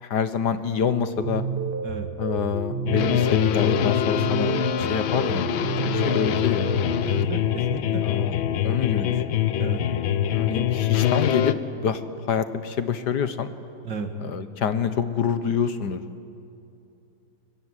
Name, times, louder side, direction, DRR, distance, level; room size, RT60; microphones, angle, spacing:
voice 1, 0.0-1.4 2.2-5.4 5.9-6.7 8.0-8.3 8.6-9.4 10.3-12.0 12.3-13.5 14.2-16.0, left 7 dB, 65° left, 11 dB, 1.5 m, -26 dB
sound 1, 1.2-7.2, right 5 dB, 40° right, 1.0 m, -30 dB
sound 2, 2.9-11.5, left 11 dB, 85° left, 1.6 m, -24 dB
voice 2, 7.0-8.1 9.6-9.8 13.8-14.1, right 5 dB, 65° right, 6 dB, 2.5 m, -33 dB
25.5 x 23.0 x 9.8 m, 2.7 s
omnidirectional pair, 2.1 m